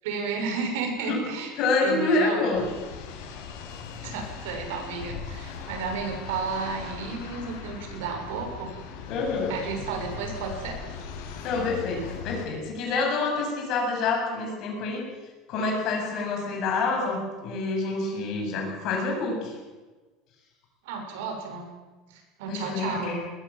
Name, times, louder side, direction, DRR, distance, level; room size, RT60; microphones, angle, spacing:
voice 1, 0.0-1.5 1.8-2.4 4.0-8.7 9.5-10.8 20.8-21.7 22.1-23.1, right 5 dB, 85° right, 3 dB, 6.7 m, -32 dB
voice 2, 1.6-2.7 9.1-9.5 11.4-15.0 15.5-19.6 22.5-23.2, left 3 dB, 40° left, 1 dB, 7.4 m, -27 dB
sound 1, 2.5-12.5, left 6 dB, 85° left, 6.1 m, -39 dB
21.5 x 20.5 x 7.6 m, 1.3 s
cardioid pair, 175°, 0 cm